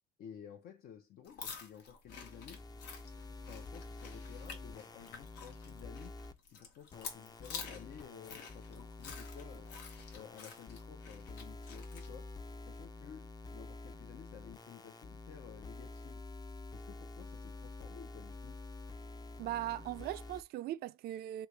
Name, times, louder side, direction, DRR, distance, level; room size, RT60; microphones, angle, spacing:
voice 1, 0.2-2.6 3.4-6.2 6.5-9.7 10.1-12.3 12.6-16.2 16.7-18.6, left 9 dB, 65° left, 0.7 m, -53 dB
sound 1, 1.2-12.1, left 5 dB, 85° left, 1.2 m, -49 dB
sound 2, 2.1-6.3 6.9-20.4, left 3 dB, 25° left, 0.5 m, -48 dB
voice 2, 19.4-21.5, right 13 dB, 70° right, 0.4 m, -39 dB
3.2 x 2.8 x 4.6 m
cardioid pair, 110°, 17 cm